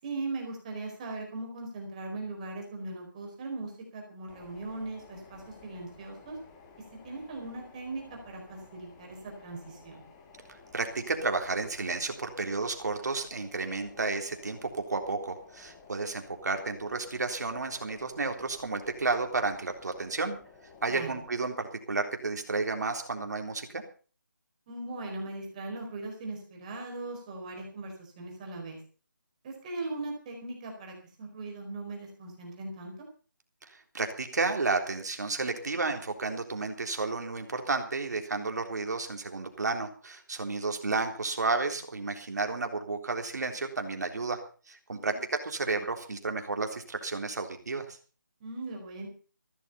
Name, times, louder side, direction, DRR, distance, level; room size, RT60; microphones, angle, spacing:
voice 1, 0.0-6.4 7.0-10.0 20.9-21.1 24.7-28.8 29.4-33.1 44.9-45.2 48.4-49.1, right 2 dB, 20° right, 1 dB, 4.6 m, -39 dB
sound 1, 4.3-21.3, left 4 dB, 15° left, 2.0 m, -54 dB
voice 2, 10.7-20.4 20.8-23.8 33.7-44.4 44.7-48.0, right 3 dB, 60° right, 5 dB, 3.6 m, -32 dB
15.5 x 12.5 x 5.6 m, 0.39 s
figure-of-eight pair, 165°, 10 cm